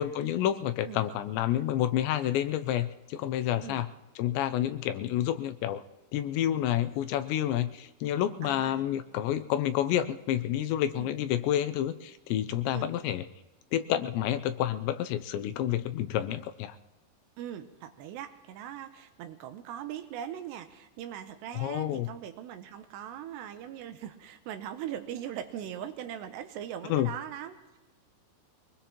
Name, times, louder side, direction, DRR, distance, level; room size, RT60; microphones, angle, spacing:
voice 1, 0.0-3.9 4.2-5.8 6.1-13.2 13.7-16.8 21.6-22.1 26.9-27.1, left 11 dB, 80° left, 10 dB, 2.9 m, -29 dB
voice 2, 8.4-8.8 10.9-11.1 12.7-12.9 17.4-27.8, right 10 dB, 80° right, 9 dB, 2.7 m, -40 dB
23.0 x 20.5 x 3.0 m, 1.1 s
omnidirectional pair, 5.2 m